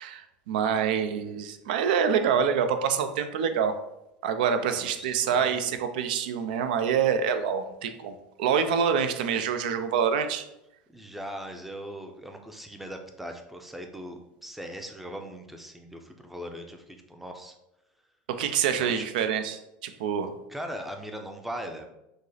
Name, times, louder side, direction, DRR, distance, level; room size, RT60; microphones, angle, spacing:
voice 1, 0.0-3.7 4.2-10.4 18.3-20.3, right 7 dB, 90° right, 8 dB, 0.5 m, -26 dB
voice 2, 4.7-5.6 10.9-17.5 18.7-19.1 20.5-21.9, equal, 5° right, 4 dB, 0.5 m, -40 dB
5.1 x 2.0 x 4.0 m, 0.87 s
supercardioid pair, 150°, 5 cm